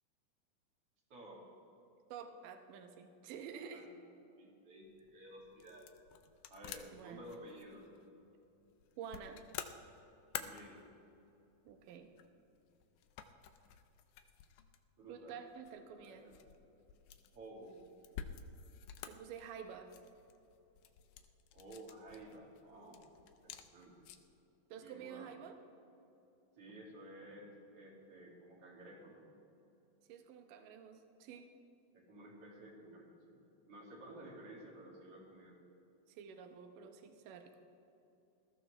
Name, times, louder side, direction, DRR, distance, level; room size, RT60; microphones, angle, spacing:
voice 1, 1.1-1.5 3.5-3.9 4.4-5.9 6.5-7.9 10.4-10.9 15.0-15.3 16.0-16.4 17.3-17.7 21.5-23.1 23.4-24.1 24.8-25.3 26.6-29.3 31.9-35.6, right 1 dB, 45° right, -2 dB, 3.0 m, -54 dB
voice 2, 2.1-3.9 6.9-7.3 9.0-9.4 11.7-12.1 15.1-16.3 19.1-19.9 24.7-25.6 30.1-31.5 36.1-37.5, right 7 dB, 70° right, 6 dB, 2.4 m, -49 dB
sound 1, 4.8-24.4, left 9 dB, 80° left, 1.8 m, -52 dB
20.5 x 14.0 x 3.3 m, 2.9 s
omnidirectional pair, 4.3 m